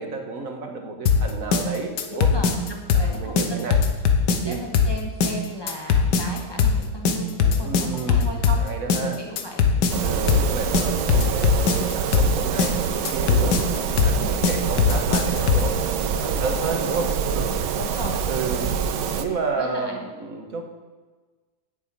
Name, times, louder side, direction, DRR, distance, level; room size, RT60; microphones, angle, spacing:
voice 1, 0.0-2.3 2.9-3.8 4.3-4.6 7.6-9.2 10.0-17.7 18.3-18.8 19.2-20.6, right 3 dB, 55° right, 4 dB, 1.7 m, -31 dB
sound 1, 1.1-15.8, left 6 dB, 80° left, 1.7 m, -20 dB
voice 2, 2.1-3.8 4.4-8.7 9.0-10.1 14.2-14.5 17.7-18.2 19.6-20.0, equal, 15° left, -1 dB, 1.6 m, -36 dB
sound 2, 9.9-19.2, right 7 dB, 80° right, 1.4 m, -26 dB
8.8 x 7.2 x 8.8 m, 1.3 s
omnidirectional pair, 1.9 m